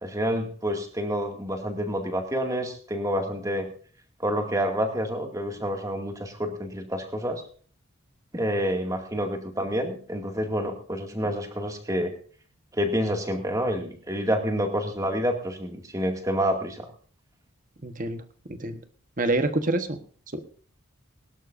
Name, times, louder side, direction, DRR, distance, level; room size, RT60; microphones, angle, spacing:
voice 1, 0.0-3.7 4.2-7.4 8.3-12.1 12.7-16.9, equal, 15° right, 4 dB, 2.2 m, -28 dB
voice 2, 17.8-18.2 18.5-18.8 19.2-20.0, right 2 dB, 35° right, 9 dB, 1.3 m, -26 dB
22.5 x 12.0 x 2.6 m, 0.43 s
head